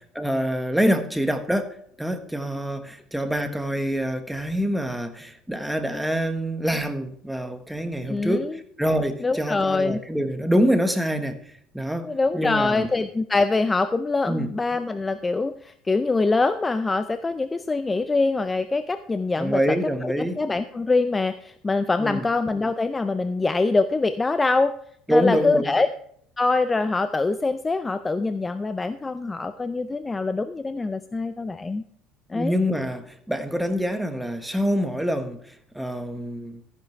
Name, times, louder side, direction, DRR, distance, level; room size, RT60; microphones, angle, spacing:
voice 1, 0.0-11.4 11.7-12.9 14.3-14.5 19.4-20.4 22.0-22.3 25.1-25.7 32.3-36.6, equal, ahead, 7 dB, 1.3 m, -25 dB
voice 2, 8.1-8.6 9.2-10.0 12.0-19.8 20.0-24.7 25.1-25.9 26.4-31.8 32.3-32.5, left 3 dB, 15° left, 10 dB, 0.5 m, -24 dB
13.5 x 10.5 x 3.3 m, 0.64 s
cardioid pair, 140°, 0 cm